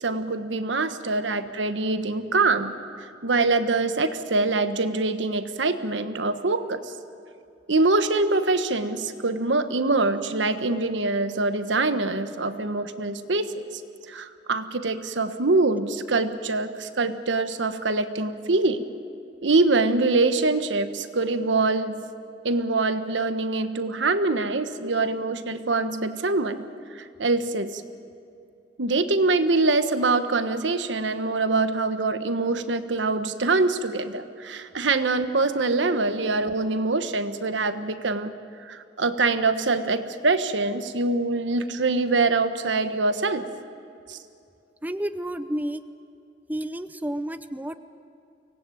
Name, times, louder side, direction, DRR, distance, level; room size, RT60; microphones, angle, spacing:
voice 1, 0.0-2.7 3.0-6.9 7.7-13.8 14.1-18.8 19.4-22.0 22.4-26.6 26.9-27.8 28.8-38.3 38.6-43.5 44.1-44.2, right 3 dB, 85° right, 10 dB, 1.2 m, -24 dB
voice 2, 44.8-45.8 46.5-47.8, right 1 dB, 10° right, 11 dB, 0.6 m, -30 dB
24.0 x 18.0 x 9.3 m, 2.5 s
head